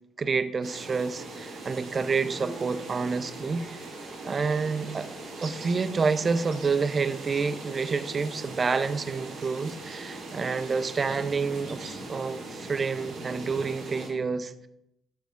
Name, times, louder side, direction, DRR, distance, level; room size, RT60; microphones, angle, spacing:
voice 1, 0.2-3.8 4.2-5.1 5.4-14.7, right 4 dB, 40° right, 12 dB, 0.7 m, -28 dB
sound 1, 0.6-14.1, right 2 dB, 70° right, 2.6 m, -40 dB
17.5 x 7.0 x 2.5 m, 0.81 s
figure-of-eight pair, 40°, 0 cm